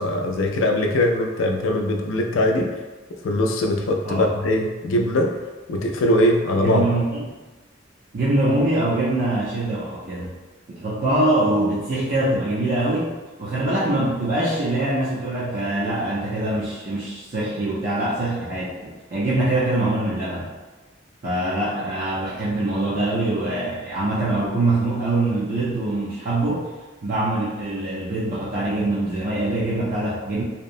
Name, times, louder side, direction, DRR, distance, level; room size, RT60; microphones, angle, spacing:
voice 1, 0.0-2.7 3.2-5.3 5.7-6.8, left 1 dB, 85° left, 2 dB, 0.4 m, -21 dB
voice 2, 6.5-7.3 8.1-10.3 10.7-20.5 21.2-26.7 27.0-30.4, right 2 dB, 45° right, -9 dB, 0.5 m, -23 dB
2.8 x 2.0 x 2.5 m, 1.2 s
head